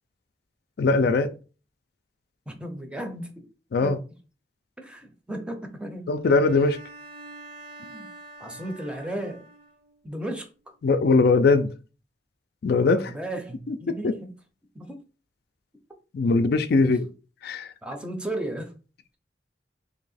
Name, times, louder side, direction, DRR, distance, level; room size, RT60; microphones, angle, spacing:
voice 1, 0.8-1.3 3.7-4.0 6.1-6.8 10.8-11.7 12.6-13.1 13.7-14.1 16.1-17.1 17.4-17.7, left 3 dB, 60° left, 0.4 m, -21 dB
voice 2, 2.5-3.5 3.8-4.0 4.8-6.2 7.8-8.1 8.4-9.5 10.0-10.5 12.9-14.3 14.7-15.0 16.8-16.9 17.8-18.7, right 1 dB, 5° right, 0.6 m, -35 dB
Bowed string instrument, 6.2-9.9, right 2 dB, 55° right, 0.7 m, -45 dB
3.0 x 2.7 x 4.1 m
head